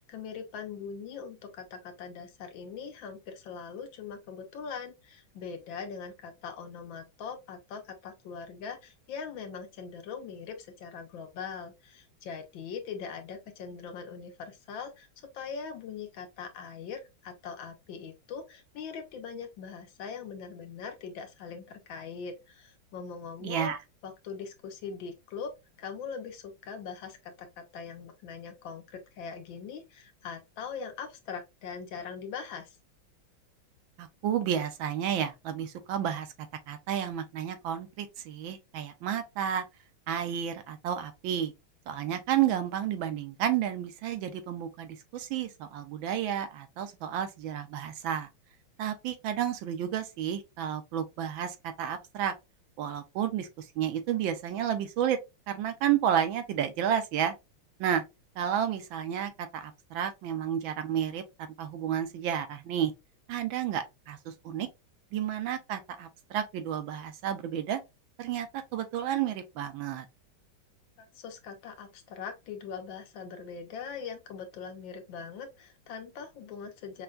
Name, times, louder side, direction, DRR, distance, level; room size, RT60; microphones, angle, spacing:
voice 1, 0.0-15.1 15.3-23.7 24.0-25.5 25.8-32.8 71.0-77.0, left 6 dB, 75° left, 1.5 m, -41 dB
voice 2, 23.4-23.8 34.0-36.3 36.7-39.6 40.1-41.5 41.9-48.3 48.8-52.3 52.8-55.2 55.5-57.3 57.8-58.0 58.4-61.2 61.6-62.9 63.3-64.7 65.1-67.8 68.2-68.5 68.7-70.1, right 9 dB, 80° right, 1.4 m, -31 dB
5.7 x 2.2 x 2.4 m
omnidirectional pair, 2.2 m